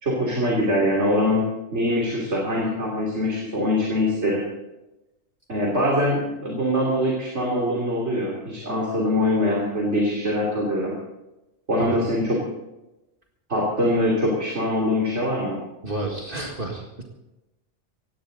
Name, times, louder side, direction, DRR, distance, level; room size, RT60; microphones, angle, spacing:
voice 1, 0.0-4.4 5.5-10.9 11.7-12.4 13.5-15.6, left 1 dB, 60° right, -3 dB, 3.3 m, -23 dB
voice 2, 15.8-17.0, right 2 dB, 45° right, 0 dB, 2.0 m, -30 dB
18.0 x 16.0 x 3.9 m, 0.98 s
omnidirectional pair, 1.3 m